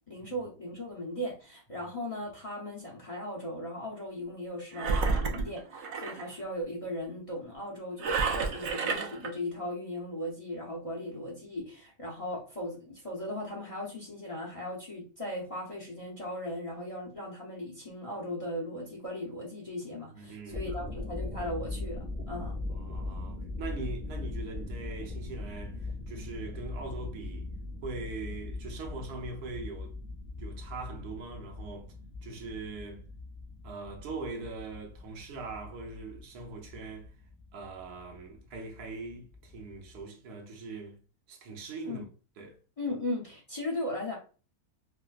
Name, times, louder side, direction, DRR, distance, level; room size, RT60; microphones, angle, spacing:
voice 1, 0.1-22.6 41.9-42.0 42.8-44.2, left 1 dB, 30° left, 0.8 m, -37 dB
Engine, 4.7-6.3 8.0-9.3, right 4 dB, 65° right, 0.7 m, -30 dB
voice 2, 20.1-20.8 22.7-27.5 27.8-30.0 30.3-31.9 32.2-33.0 33.6-37.1 37.5-41.0 41.3-42.0 42.4-42.6, right 3 dB, 85° right, 1.3 m, -41 dB
sound 1, 20.3-40.0, left 2 dB, 5° right, 1.0 m, -40 dB
4.7 x 2.1 x 2.3 m
omnidirectional pair, 1.6 m